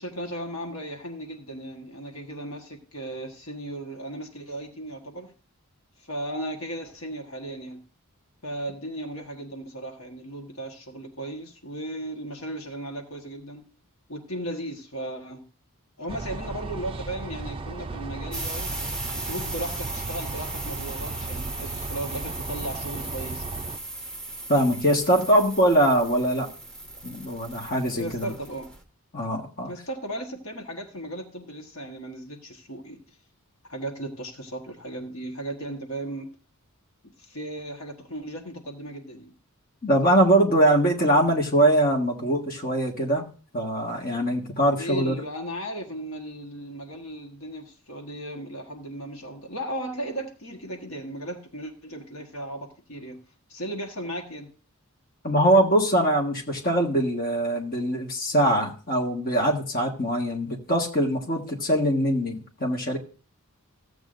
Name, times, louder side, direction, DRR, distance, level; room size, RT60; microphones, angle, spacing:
voice 1, 0.0-5.3 6.0-7.8 8.4-13.6 14.1-15.4 16.0-18.9 19.1-23.7 27.9-28.7 29.7-33.2 33.7-36.3 37.0-39.3 44.7-53.2 53.5-54.5, right 1 dB, 65° left, 3 dB, 1.5 m, -36 dB
sound 1, 16.1-23.8, right 3 dB, 25° right, 0.4 m, -35 dB
sound 2, 18.3-28.8, right 2 dB, 5° left, 1.1 m, -37 dB
voice 2, 24.5-26.5 27.0-28.3 29.1-29.7 39.8-43.2 43.5-45.2 55.2-63.0, right 1 dB, 40° left, 1 dB, 1.6 m, -22 dB
15.0 x 8.1 x 2.6 m, 0.37 s
head